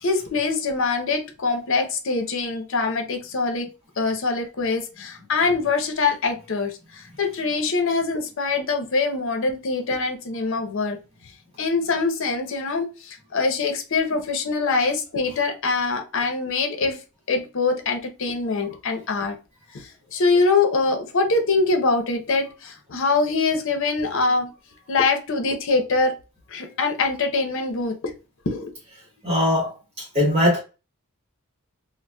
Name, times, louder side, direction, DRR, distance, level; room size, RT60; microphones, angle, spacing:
voice 1, 0.0-3.7 4.0-11.0 11.6-17.0 17.3-19.4 19.7-24.5 24.9-26.1 26.5-28.0 28.5-28.7, left 3 dB, 65° left, 0.7 m, -24 dB
voice 2, 29.2-30.6, left 1 dB, 30° right, 1.0 m, -21 dB
3.9 x 2.1 x 2.2 m
head